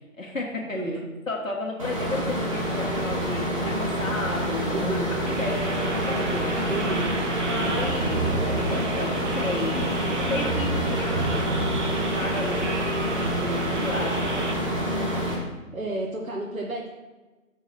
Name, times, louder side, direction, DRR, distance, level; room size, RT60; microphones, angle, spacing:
voice 1, 0.1-0.8 1.3-5.0 5.4-6.7 7.4-13.2 13.8-14.4, left 2 dB, 70° left, -2 dB, 1.8 m, -33 dB
voice 2, 0.7-1.0 4.7-5.2 6.7-7.1 13.3-13.7 15.7-16.9, right 2 dB, 80° right, -1 dB, 1.5 m, -31 dB
sound 1, 1.8-15.3, equal, 25° right, 1.6 m, -27 dB
sound 2, 5.3-14.5, right 2 dB, 60° right, 1.1 m, -31 dB
6.4 x 4.7 x 5.9 m, 1.2 s
figure-of-eight pair, 160°, 41 cm